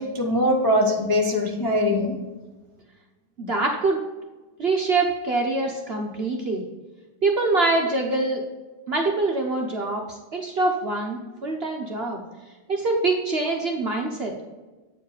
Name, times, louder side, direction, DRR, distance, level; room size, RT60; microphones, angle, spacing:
voice 1, 0.0-2.2, left 1 dB, 35° left, 0 dB, 0.3 m, -22 dB
voice 2, 3.4-4.0 4.6-6.6 7.2-8.4 8.9-12.2 12.7-14.3, right 3 dB, 50° right, 1 dB, 0.7 m, -24 dB
8.6 x 4.8 x 4.9 m, 1.2 s
omnidirectional pair, 2.1 m